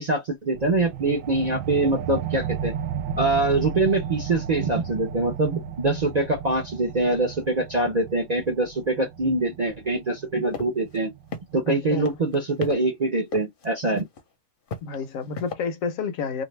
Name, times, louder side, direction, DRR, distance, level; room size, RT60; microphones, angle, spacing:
voice 1, 0.0-2.7 3.2-11.1 11.5-14.1, right 2 dB, 45° right, 0.5 m, -24 dB
sound 1, 0.5-11.6, right 8 dB, 70° right, 0.9 m, -34 dB
sound 2, 10.5-10.7 10.9-11.0 11.3-11.7 12.1-12.8 13.3-13.7 14.0-14.2 14.7-15.5, left 4 dB, 50° left, 0.8 m, -34 dB
voice 2, 11.7-12.2 14.8-16.4, left 5 dB, 70° left, 1.0 m, -30 dB
2.6 x 2.5 x 3.1 m
omnidirectional pair, 1.5 m